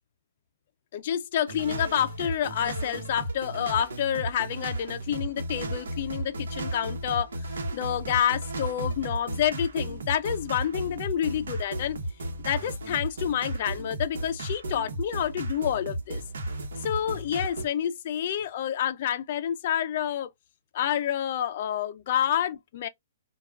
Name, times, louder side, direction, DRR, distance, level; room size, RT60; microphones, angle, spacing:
voice 1, 0.9-7.3 7.7-12.0 12.4-16.2 16.8-20.3 20.7-22.9, left 10 dB, 45° left, 0.4 m, -28 dB
sound 1, 1.5-17.6, right 1 dB, 85° right, 0.9 m, -34 dB
3.4 x 2.3 x 2.3 m
hypercardioid pair, 160°, 0 cm